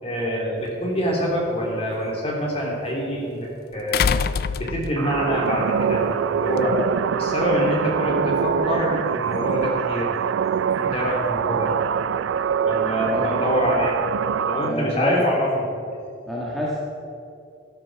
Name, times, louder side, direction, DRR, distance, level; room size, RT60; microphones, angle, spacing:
voice 1, 0.0-4.1 4.6-6.8 7.1-10.1 10.8-11.7 12.6-14.0 14.4-15.7, equal, 30° left, -3 dB, 2.9 m, -25 dB
sound 1, 0.7-0.8 3.9-5.2 6.6-6.7, left 6 dB, 50° left, 0.3 m, -23 dB
sound 2, 5.0-14.7, right 7 dB, 80° right, 0.3 m, -24 dB
voice 2, 12.8-13.3 14.6-15.2 16.3-16.8, equal, ahead, -6 dB, 1.5 m, -27 dB
12.5 x 12.5 x 4.7 m, 2.5 s
head